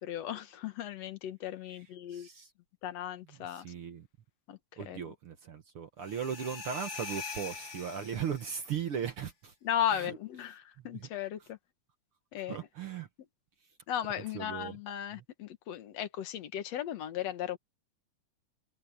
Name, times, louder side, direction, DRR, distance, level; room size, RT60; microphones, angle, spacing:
voice 1, 0.0-2.3 2.8-3.7 4.5-4.6 4.9-5.0 9.6-11.6 12.3-12.6 13.9-17.6, left 10 dB, 60° left, 2.1 m, -36 dB
voice 2, 2.1-2.5 3.3-4.1 4.8-9.5 9.9-10.2 10.8-11.1 12.5-13.1 14.3-14.8 15.1-15.2, right 8 dB, 55° right, 1.7 m, -38 dB
sound 1, 6.0-8.7, left 4 dB, 30° left, 1.4 m, -43 dB
omnidirectional pair, 3.7 m